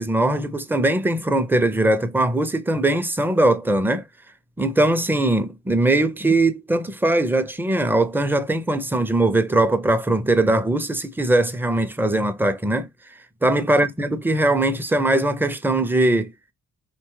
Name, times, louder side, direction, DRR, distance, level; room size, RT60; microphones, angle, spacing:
voice 1, 0.0-4.1 4.6-12.9 13.4-16.3, right 2 dB, 5° right, 0.5 m, -20 dB
3.0 x 2.2 x 3.0 m
supercardioid pair, 50°, 32 cm